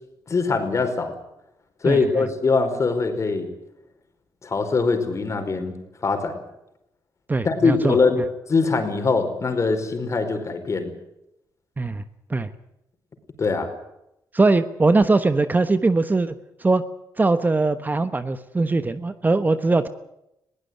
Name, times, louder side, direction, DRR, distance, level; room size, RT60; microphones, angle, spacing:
voice 1, 0.3-1.1 1.8-3.5 4.4-5.7 6.0-6.4 7.4-8.2 8.5-10.9 13.4-13.7, left 4 dB, 40° left, 6 dB, 4.9 m, -22 dB
voice 2, 1.8-2.3 7.3-8.0 11.8-12.0 12.3-12.5 14.3-16.3 16.6-16.8 17.2-19.9, right 3 dB, 25° right, 11 dB, 1.2 m, -21 dB
21.0 x 17.0 x 9.5 m, 0.85 s
cardioid pair, 100°, 8 cm